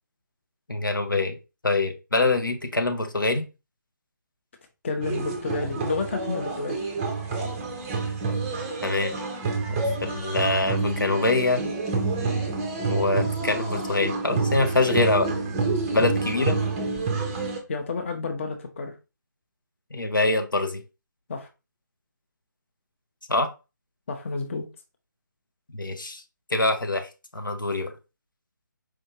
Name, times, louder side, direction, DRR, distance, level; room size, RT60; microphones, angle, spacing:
voice 1, 0.7-1.4 1.6-3.5 8.8-9.1 9.7-11.6 12.9-15.3 15.9-16.6 19.9-20.8 23.3-23.5 25.7-26.2 26.5-27.9, left 2 dB, 80° left, 0.7 m, -24 dB
voice 2, 4.8-6.8 16.0-16.2 17.7-19.0 21.3-21.5 24.1-24.7, left 4 dB, 35° left, 0.6 m, -30 dB
sound 1, 5.0-17.6, right 4 dB, 15° right, 0.5 m, -28 dB
4.6 x 2.6 x 2.7 m
figure-of-eight pair, 150°, 11 cm